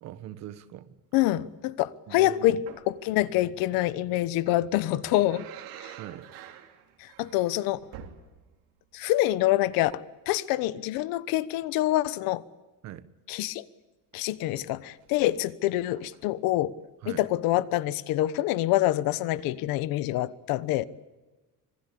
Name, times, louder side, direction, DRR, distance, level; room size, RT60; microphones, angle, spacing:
voice 1, 0.0-0.9 2.1-2.6 6.0-6.3 12.8-13.1 17.0-17.3, right 12 dB, 50° right, 1.3 m, -42 dB
voice 2, 1.1-5.5 5.8-5.9 7.0-7.9 8.9-12.4 13.3-13.6 14.1-16.7 17.1-20.8, left 15 dB, 70° left, 1.2 m, -26 dB
sound 1, 2.7-3.0 4.6-8.7 9.0-9.1 14.9-15.3 16.0-16.4 17.2-17.3, right 10 dB, 65° right, 3.2 m, -47 dB
26.0 x 21.0 x 8.6 m
cardioid pair, 180°, 36 cm